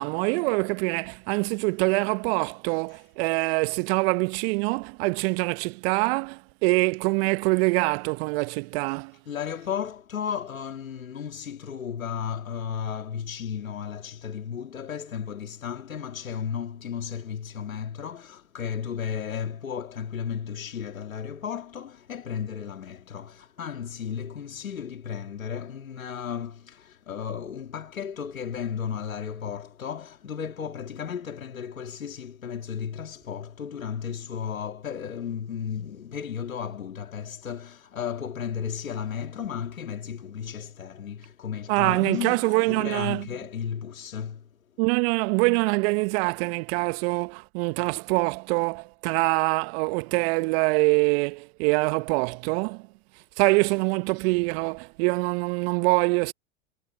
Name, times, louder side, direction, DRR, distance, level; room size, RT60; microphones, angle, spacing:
voice 1, 0.0-9.1 41.7-43.3 44.8-52.8 53.4-56.3, right 29 dB, 50° right, 1.3 m, -24 dB
voice 2, 9.3-44.5, left 7 dB, 80° left, 2.0 m, -34 dB
figure-of-eight pair, 95°, 40 cm